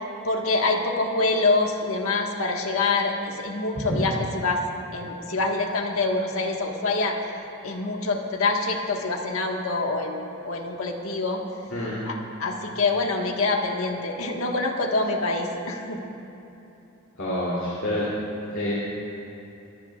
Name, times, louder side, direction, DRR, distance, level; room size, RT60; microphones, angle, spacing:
voice 1, 0.2-4.6 4.9-7.2 7.6-11.4 12.0-16.0, left 3 dB, 90° left, 1 dB, 1.5 m, -25 dB
voice 2, 11.7-12.0 17.2-18.1 18.5-18.7, left 1 dB, 65° left, -8 dB, 3.0 m, -27 dB
25.0 x 14.5 x 2.4 m, 2.9 s
head